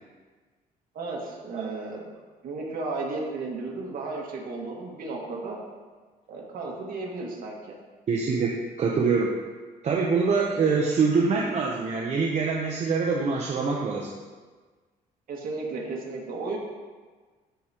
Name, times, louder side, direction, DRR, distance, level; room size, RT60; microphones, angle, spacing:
voice 1, 0.9-2.1 2.4-5.6 6.3-7.7 15.3-16.6, right 3 dB, 65° right, -2 dB, 1.9 m, -34 dB
voice 2, 8.1-9.4 9.8-14.1, right 4 dB, 45° right, -2 dB, 0.8 m, -24 dB
13.5 x 4.8 x 2.9 m, 1.4 s
cardioid pair, 125°, 16 cm